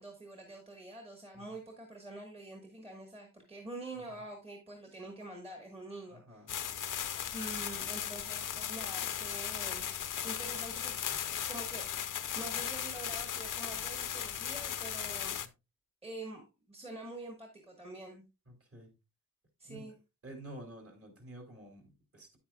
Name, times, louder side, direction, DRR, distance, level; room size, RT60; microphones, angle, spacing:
voice 1, 0.0-6.5 7.3-9.9 10.2-10.9 11.3-12.1 12.3-15.4 16.0-18.2 19.6-20.0, right 2 dB, 20° right, 2 dB, 1.4 m, -46 dB
voice 2, 6.1-6.5 18.5-18.9 19.7-19.9 20.2-22.4, right 1 dB, 45° right, 2 dB, 2.8 m, -50 dB
sound 1, 6.5-15.5, left 9 dB, 70° left, 0.7 m, -37 dB
9.5 x 8.6 x 2.3 m, 0.26 s
wide cardioid pair, 175°, 33 cm